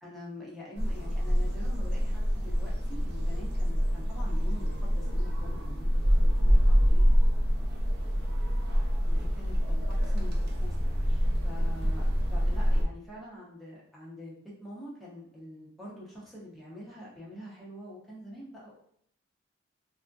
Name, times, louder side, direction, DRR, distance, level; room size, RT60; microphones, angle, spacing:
voice 1, 0.0-7.2 9.1-10.3 10.6-18.8, left 1 dB, ahead, -7 dB, 0.6 m, -46 dB
sound 1, 0.8-12.8, equal, 50° right, 0.5 m, -26 dB
3.4 x 2.6 x 2.2 m, 0.67 s
head